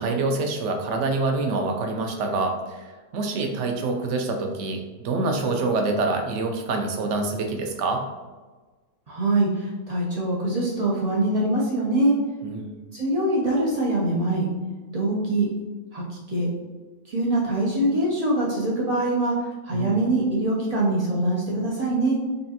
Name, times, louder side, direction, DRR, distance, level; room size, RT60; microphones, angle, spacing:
voice 1, 0.0-8.1 12.4-12.8 19.7-20.0, right 3 dB, 65° right, 3 dB, 0.7 m, -26 dB
voice 2, 9.1-12.1 12.9-14.5 14.9-15.5 15.9-16.5 17.0-22.2, right 1 dB, 85° right, -5 dB, 0.3 m, -23 dB
5.3 x 2.4 x 2.8 m, 1.3 s
omnidirectional pair, 1.7 m